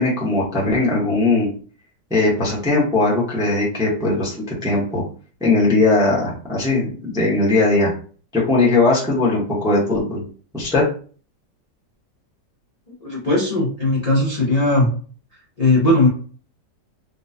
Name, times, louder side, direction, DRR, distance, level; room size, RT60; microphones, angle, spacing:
voice 1, 0.0-1.5 2.1-5.0 5.4-7.9 8.3-10.2 10.5-10.8, left 2 dB, 5° right, -4 dB, 0.6 m, -19 dB
voice 2, 13.0-14.9 15.6-16.1, left 2 dB, 35° left, -5 dB, 0.6 m, -18 dB
3.8 x 2.4 x 2.7 m, 0.41 s
omnidirectional pair, 1.8 m